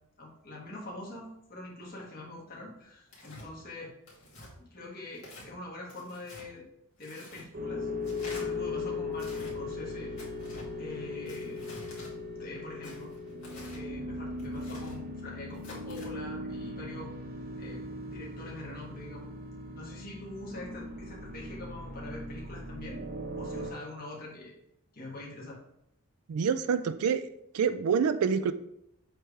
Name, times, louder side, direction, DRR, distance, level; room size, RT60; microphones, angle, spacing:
voice 1, 0.2-3.9 4.6-6.6 7.0-7.9 8.3-10.1 10.8-11.7 12.4-13.1 13.7-17.1 17.6-17.8 18.1-19.3 19.7-23.0 23.3-24.5 24.9-25.6, left 2 dB, 40° left, -3 dB, 1.7 m, -44 dB
Tearing, 3.1-3.5 4.1-4.5 5.2-5.5 5.9-6.5 7.0-7.4 8.0-8.4 9.1-9.5 10.2-10.7 11.3-12.1 12.8-13.8 14.4-15.0 15.5-16.1, left 2 dB, 60° left, 2.4 m, -48 dB
sound 1, 7.5-23.7, left 2 dB, 40° right, 0.8 m, -38 dB
voice 2, 26.3-27.3 27.5-28.5, right 6 dB, 80° right, 12 dB, 0.4 m, -27 dB
7.7 x 3.3 x 4.8 m, 0.80 s
head